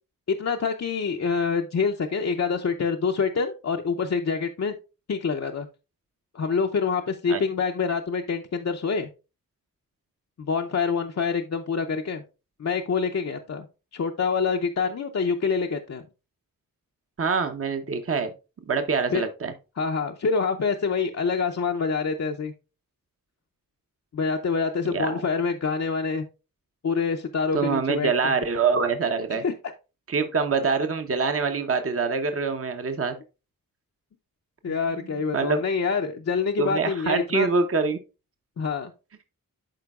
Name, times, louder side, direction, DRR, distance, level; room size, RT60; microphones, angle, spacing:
voice 1, 0.3-4.7 5.1-5.7 6.3-9.1 10.4-12.2 12.6-13.7 13.9-16.0 19.1-19.2 19.8-22.5 24.1-26.2 26.8-28.3 29.3-29.5 34.6-37.5 38.6-38.9, left 5 dB, 50° left, 3 dB, 0.6 m, -26 dB
voice 2, 17.2-18.3 18.7-19.5 24.9-25.2 27.5-29.4 30.1-33.1 34.7-34.8 35.3-35.6 36.6-38.0, right 5 dB, 40° right, 7 dB, 0.8 m, -25 dB
11.5 x 4.5 x 2.3 m, 0.30 s
wide cardioid pair, 80°, 34 cm